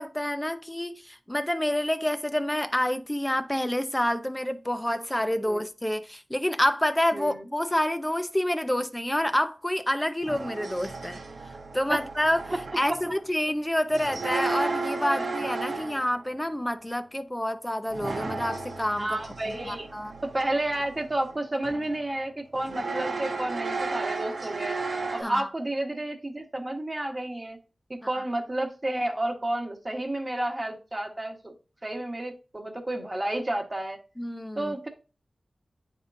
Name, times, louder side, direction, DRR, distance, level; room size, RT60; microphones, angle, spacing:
voice 1, 0.0-11.2 11.7-19.2 19.6-20.1 25.2-25.5 34.2-34.7, left 1 dB, 10° left, 0.7 m, -28 dB
voice 2, 7.1-7.4 11.9-12.0 12.9-13.0 15.0-15.3 15.6-16.0 19.0-19.9 20.2-24.8 25.1-27.6 27.9-31.5 31.8-34.0 34.5-34.9, right 1 dB, 25° right, 1.4 m, -31 dB
sound 1, 10.2-13.2 13.9-16.2 17.9-21.4 21.6-22.0 22.5-25.2, right 3 dB, 80° right, 0.9 m, -34 dB
10.0 x 3.7 x 2.6 m
wide cardioid pair, 70°, 0 cm